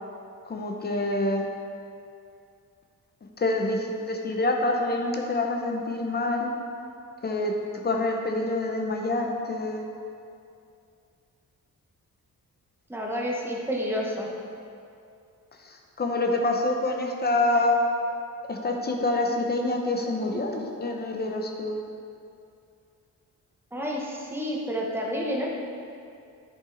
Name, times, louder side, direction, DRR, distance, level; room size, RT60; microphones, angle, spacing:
voice 1, 0.5-1.4 3.4-6.5 7.2-7.5 7.8-9.8 15.6-17.8 18.5-21.8, left 2 dB, 30° left, 1 dB, 0.7 m, -26 dB
voice 2, 12.9-14.3 23.7-25.5, equal, 5° right, -2 dB, 1.0 m, -29 dB
13.0 x 5.6 x 3.9 m, 2.5 s
wide cardioid pair, 180°, 32 cm